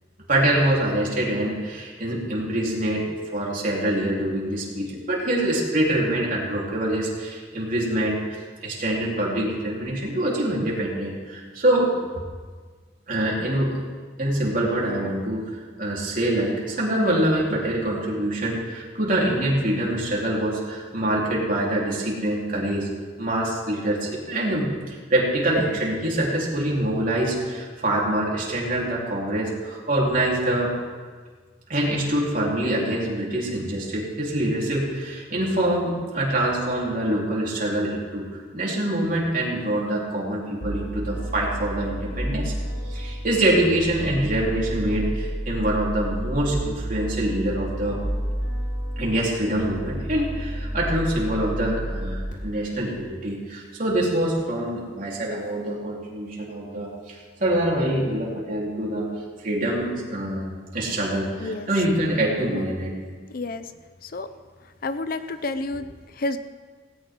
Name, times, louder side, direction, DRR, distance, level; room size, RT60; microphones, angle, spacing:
voice 1, 0.3-3.1 3.3-11.9 13.1-13.7 14.2-15.5 15.8-22.9 23.2-30.7 31.7-38.2 38.5-42.5 42.9-48.0 49.0-59.1 59.4-62.9, right 1 dB, 45° right, -4 dB, 3.9 m, -25 dB
sound 1, 40.6-52.3, equal, 70° left, 4.0 m, -31 dB
voice 2, 63.3-63.7 64.0-64.3 64.8-66.4, left 2 dB, 50° left, 11 dB, 0.6 m, -30 dB
18.5 x 18.0 x 3.9 m, 1.5 s
head